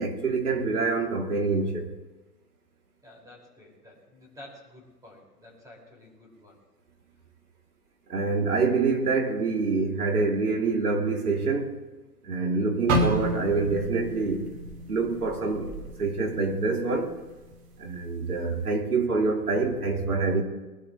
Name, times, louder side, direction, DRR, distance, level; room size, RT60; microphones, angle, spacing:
voice 1, 0.0-1.9 8.1-11.8 12.2-14.5 14.9-17.2 17.8-20.4, right 4 dB, 70° right, 3.3 m, -26 dB
voice 2, 3.0-6.6, left 1 dB, 5° right, 5.6 m, -50 dB
sound 1, 12.9-16.9 17.3-17.5 18.2-18.5, right 1 dB, 30° right, 1.9 m, -30 dB
22.5 x 13.0 x 3.3 m
figure-of-eight pair, 120°, 48 cm